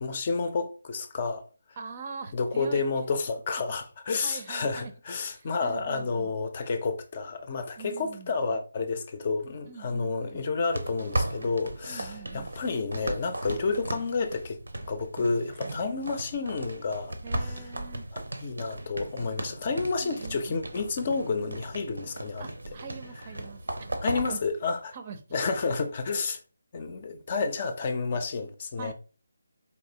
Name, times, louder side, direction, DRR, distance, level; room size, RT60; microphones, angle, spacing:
voice 1, 0.0-1.5 2.3-14.6 14.9-17.1 17.4-17.6 18.1-22.4 24.0-25.0 25.3-26.4 26.7-28.9, left 4 dB, 35° left, 0.6 m, -30 dB
voice 2, 1.8-2.8 4.2-4.9 5.3-6.3 7.8-8.3 9.7-10.4 11.9-12.5 15.5-15.8 17.2-18.1 20.0-20.6 22.4-23.6 24.1-24.4 24.9-25.2 25.7-25.9 28.8-28.9, right 5 dB, 35° right, 0.6 m, -43 dB
sound 1, 10.7-24.4, right 1 dB, 75° right, 0.7 m, -36 dB
4.1 x 3.3 x 2.8 m
figure-of-eight pair, 155°, 0 cm